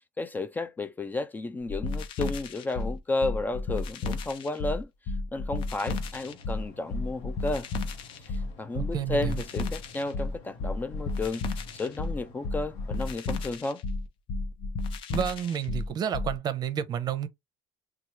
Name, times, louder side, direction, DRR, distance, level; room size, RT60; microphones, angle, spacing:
voice 1, 0.2-4.9 5.3-7.7 8.2-11.5 11.7-13.8, left 2 dB, 20° left, 0.3 m, -32 dB
sound 1, 1.7-16.4, left 3 dB, 60° left, 0.7 m, -33 dB
sound 2, 5.9-13.2, left 3 dB, 85° left, 1.0 m, -52 dB
voice 2, 8.7-9.4 15.1-17.3, right 9 dB, 45° right, 0.7 m, -30 dB
3.0 x 2.3 x 4.3 m
cardioid pair, 110°, 10 cm